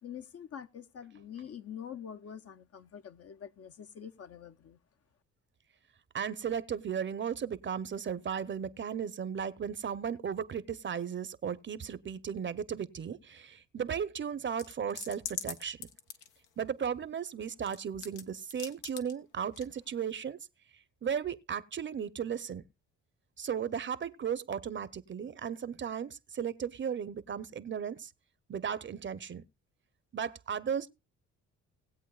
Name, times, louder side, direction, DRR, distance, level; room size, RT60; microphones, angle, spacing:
voice 1, 0.0-4.8, left 8 dB, 50° left, 0.8 m, -45 dB
voice 2, 6.1-15.8 16.6-20.4 21.0-22.6 23.4-28.1 28.5-29.4 30.1-30.9, right 7 dB, 40° right, 0.8 m, -35 dB
sound 1, 14.6-16.9 17.3-18.2 18.5-19.1 19.5-19.6, left 8 dB, 90° left, 1.2 m, -41 dB
19.0 x 8.1 x 2.4 m
cardioid pair, 90°, 30 cm